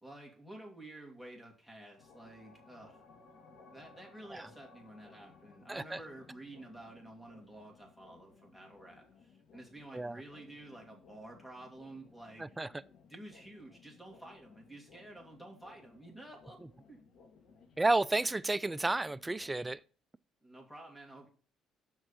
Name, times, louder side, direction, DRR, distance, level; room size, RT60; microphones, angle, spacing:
voice 1, 0.0-3.0 3.7-12.6 13.1-16.6 16.9-17.0 20.4-21.3, right 1 dB, 5° left, 2.5 m, -51 dB
sound 1, 2.0-19.7, left 4 dB, 65° left, 1.7 m, -60 dB
voice 2, 5.7-6.0 9.9-10.1 12.6-12.7 17.8-19.8, right 2 dB, 15° right, 0.3 m, -31 dB
6.2 x 4.5 x 5.7 m
supercardioid pair, 80°, 0 cm